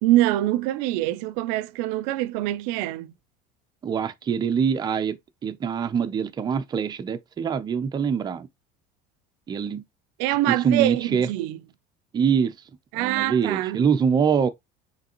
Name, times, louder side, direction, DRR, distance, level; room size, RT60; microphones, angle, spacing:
voice 1, 0.0-3.1 10.2-11.6 12.9-13.8, right 15 dB, 75° right, 0.5 m, -24 dB
voice 2, 3.8-8.5 9.5-9.8 10.5-11.3 12.1-12.5 12.9-14.5, right 7 dB, 20° right, 0.5 m, -24 dB
5.1 x 3.2 x 2.9 m
cardioid pair, 135°, 19 cm